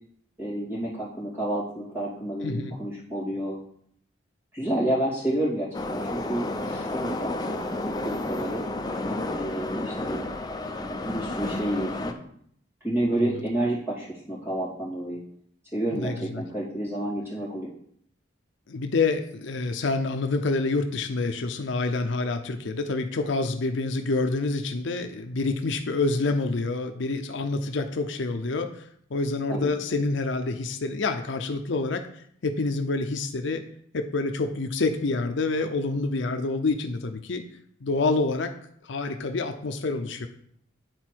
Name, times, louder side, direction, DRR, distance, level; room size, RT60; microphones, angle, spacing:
voice 1, 0.4-3.6 4.5-7.3 7.8-8.6 9.2-10.3 10.8-12.2 12.8-15.2 15.7-17.7 29.5-29.7, right 1 dB, 10° right, -7 dB, 2.6 m, -30 dB
voice 2, 2.4-2.8 15.9-16.4 18.7-33.6 33.9-37.4 37.8-38.5 38.8-40.3, left 3 dB, 65° left, 7 dB, 0.5 m, -27 dB
Subway metro underground, 5.7-12.1, left 2 dB, 20° left, 0.5 m, -31 dB
9.3 x 4.1 x 4.5 m, 0.67 s
head